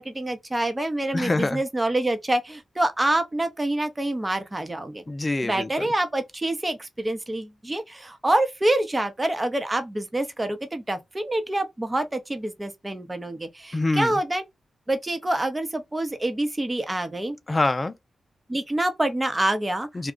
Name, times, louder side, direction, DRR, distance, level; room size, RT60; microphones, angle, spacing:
voice 1, 0.0-5.0 5.4-14.4 14.9-17.4 18.5-19.9, right 1 dB, 25° right, 0.7 m, -26 dB
voice 2, 1.1-1.6 5.1-5.9 13.7-14.1 17.5-17.9 19.9-20.1, left 2 dB, 35° left, 0.5 m, -25 dB
2.4 x 2.3 x 3.7 m
supercardioid pair, 45°, 0 cm